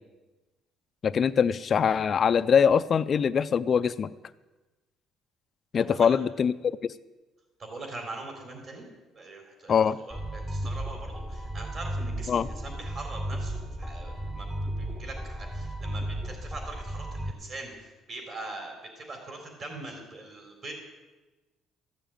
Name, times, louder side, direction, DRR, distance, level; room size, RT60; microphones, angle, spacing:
voice 1, 1.0-4.1 5.7-6.5 9.7-10.0 12.3-12.5, left 7 dB, 35° left, 14 dB, 0.3 m, -23 dB
voice 2, 7.6-8.8 9.1-14.5 14.8-17.7 18.1-20.7, right 2 dB, 40° right, 2 dB, 3.8 m, -42 dB
sound 1, 10.1-17.3, right 1 dB, 5° right, 0.7 m, -34 dB
14.5 x 7.0 x 9.0 m, 1.2 s
cardioid pair, 145°, 0 cm